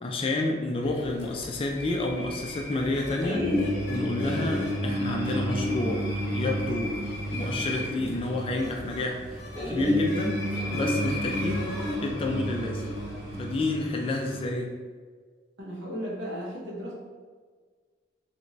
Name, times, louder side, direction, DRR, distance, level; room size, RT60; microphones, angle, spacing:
voice 1, 0.0-3.4 3.9-6.0 6.3-7.0 7.3-9.4 9.7-10.4 10.7-11.7 12.0-12.9 13.4-14.7, left 2 dB, 30° left, 2 dB, 0.3 m, -29 dB
sound 1, 0.8-13.7, left 2 dB, 65° left, 0.7 m, -39 dB
sound 2, 3.2-14.5, equal, 20° right, 0.8 m, -31 dB
voice 2, 15.6-16.9, equal, 85° right, -5 dB, 1.0 m, -35 dB
3.3 x 2.6 x 3.0 m, 1.5 s
head